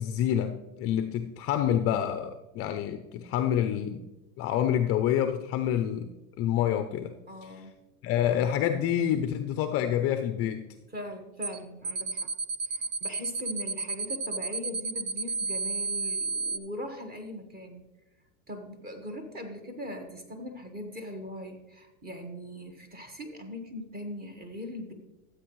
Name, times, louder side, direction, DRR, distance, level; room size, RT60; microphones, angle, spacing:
voice 1, 0.0-4.0 4.4-6.1 6.4-7.1 8.0-10.6, left 10 dB, 35° left, 0.4 m, -27 dB
voice 2, 7.3-7.8 10.9-12.3 12.6-17.8 18.5-24.9, left 1 dB, 20° right, 1.4 m, -40 dB
sound 1, 11.4-11.6 11.8-16.6, right 4 dB, 80° right, 1.2 m, -31 dB
13.5 x 8.0 x 3.1 m
supercardioid pair, 135°, 43 cm